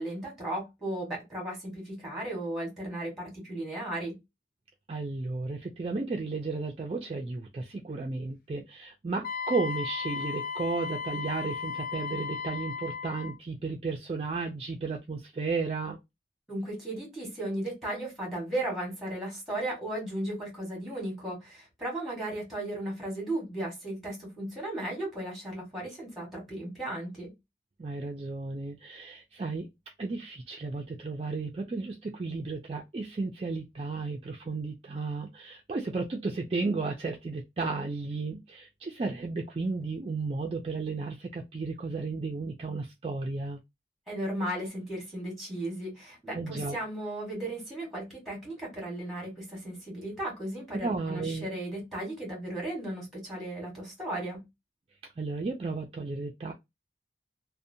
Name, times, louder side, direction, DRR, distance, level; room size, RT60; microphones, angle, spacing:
voice 1, 0.0-4.2 16.5-27.3 44.1-54.4, right 1 dB, ahead, 1.2 m, -35 dB
voice 2, 4.9-16.0 27.8-29.7 30.0-43.6 46.3-46.8 50.8-51.5 55.2-56.5, right 3 dB, 35° right, 0.3 m, -33 dB
Wind instrument woodwind instrument, 9.2-13.4, left 6 dB, 50° left, 0.3 m, -35 dB
2.6 x 2.1 x 2.6 m
head